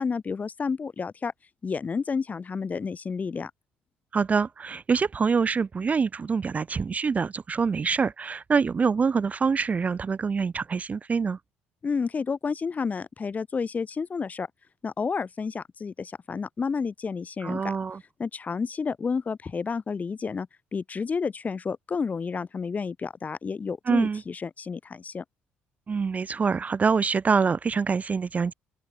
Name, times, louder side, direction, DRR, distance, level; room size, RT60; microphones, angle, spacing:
voice 1, 0.0-1.3 1.6-3.5 11.8-14.5 14.8-17.7 18.2-25.2, left 5 dB, 35° left, 2.3 m, -30 dB
voice 2, 4.1-11.4 17.4-18.0 23.9-24.2 25.9-28.5, right 5 dB, 35° right, 0.6 m, -25 dB
open air
supercardioid pair, 70°, 5 cm